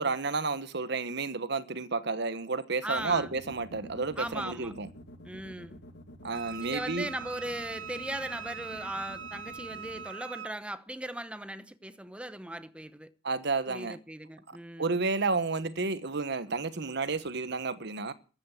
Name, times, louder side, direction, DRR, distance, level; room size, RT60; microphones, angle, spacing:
voice 1, 0.0-4.9 6.2-7.1 13.2-14.0 14.8-18.1, right 4 dB, 65° right, 1.3 m, -31 dB
voice 2, 2.8-3.3 4.2-4.7 5.2-5.8 6.6-13.1 13.7-14.9, right 1 dB, 5° right, 0.9 m, -38 dB
sound 1, 3.0-10.0, equal, 65° left, 2.2 m, -48 dB
Wind instrument woodwind instrument, 6.3-10.5, right 6 dB, 85° right, 1.5 m, -42 dB
14.0 x 9.6 x 8.3 m
head